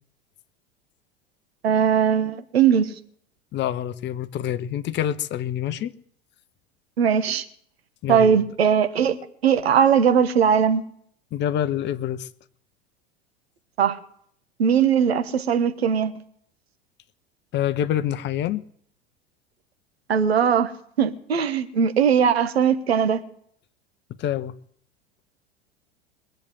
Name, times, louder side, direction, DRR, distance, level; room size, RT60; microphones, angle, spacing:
voice 1, 1.6-2.9 7.0-7.4 8.1-10.8 13.8-14.0 14.6-16.1 20.1-20.7 21.0-23.2, right 7 dB, 75° right, 1.4 m, -20 dB
voice 2, 3.5-5.9 8.0-8.3 11.3-12.3 17.5-18.6 24.2-24.5, left 11 dB, 35° left, 0.9 m, -26 dB
21.5 x 7.9 x 7.8 m
figure-of-eight pair, 80°, 32 cm